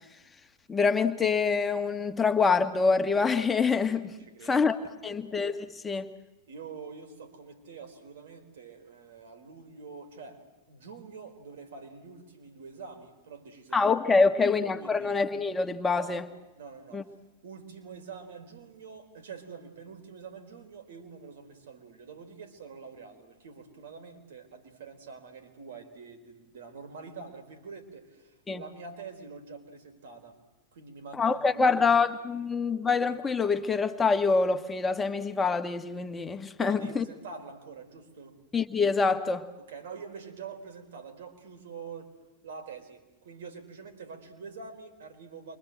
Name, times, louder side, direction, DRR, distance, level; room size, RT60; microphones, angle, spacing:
voice 1, 0.7-4.1 4.5-4.8 5.0-6.1 13.7-16.2 16.9-17.0 28.5-28.6 31.1-37.0 38.5-39.5, left 4 dB, 15° left, 1.7 m, -25 dB
voice 2, 4.2-4.7 4.9-5.4 6.5-15.2 15.9-16.2 16.6-17.1 17.4-30.4 30.7-32.0 36.6-38.4 39.6-42.1 42.4-45.6, right 5 dB, 60° right, 4.4 m, -46 dB
29.0 x 24.5 x 7.9 m
figure-of-eight pair, 90°, 0 cm